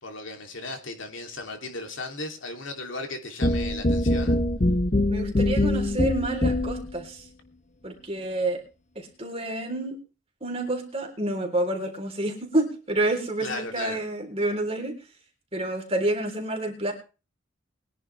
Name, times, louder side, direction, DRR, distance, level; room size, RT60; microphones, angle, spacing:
voice 1, 0.0-4.4 13.4-14.0, left 2 dB, 60° left, 4 dB, 2.9 m, -36 dB
sound 1, 3.4-6.9, left 1 dB, 35° left, 0.8 m, -23 dB
voice 2, 5.1-7.2 7.8-8.6 8.9-10.0 10.4-15.0 15.5-16.9, right 2 dB, 25° right, 2 dB, 3.5 m, -28 dB
22.0 x 10.5 x 3.3 m, 0.33 s
head